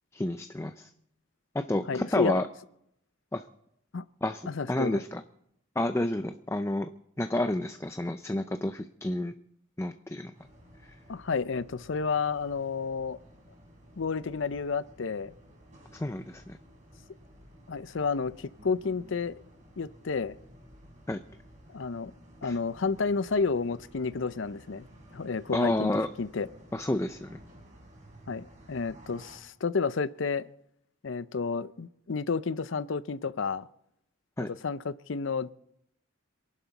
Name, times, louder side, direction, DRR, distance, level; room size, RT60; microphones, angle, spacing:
voice 1, 0.1-0.9 1.5-2.5 3.3-3.4 4.2-5.2 5.8-6.9 7.2-9.3 9.8-10.3 15.9-16.6 21.1-21.2 22.4-22.6 25.5-26.1 26.7-27.3 34.4-34.5, left 1 dB, 15° left, 0.5 m, -30 dB
voice 2, 1.9-2.4 3.9-4.0 4.5-5.0 11.1-13.2 14.0-15.3 17.7-19.3 19.8-20.4 21.7-22.1 22.4-24.9 25.1-25.9 26.2-26.5 28.3-30.4 31.0-33.7 34.4-35.5, left 4 dB, 70° left, 0.6 m, -31 dB
sound 1, 10.3-29.4, equal, 35° right, 4.7 m, -54 dB
27.0 x 11.5 x 4.1 m
head